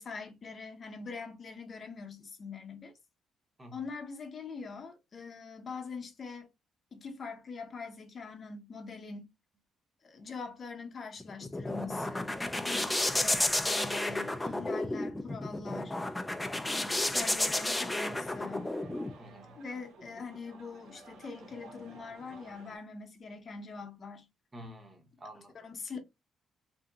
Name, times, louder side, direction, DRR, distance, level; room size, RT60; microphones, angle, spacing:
voice 1, 0.0-2.9 3.7-6.5 6.9-9.2 10.0-15.9 16.6-18.7 19.6-24.2 25.6-26.0, left 4 dB, 45° left, 0.8 m, -43 dB
voice 2, 3.6-3.9 19.2-19.6 24.5-25.7, equal, 20° right, 0.9 m, -50 dB
sound 1, 11.2-19.1, left 1 dB, 10° left, 0.4 m, -32 dB
sound 2, 17.6-22.8, right 2 dB, 80° right, 0.6 m, -54 dB
2.8 x 2.7 x 2.3 m
cardioid pair, 90°, 0 cm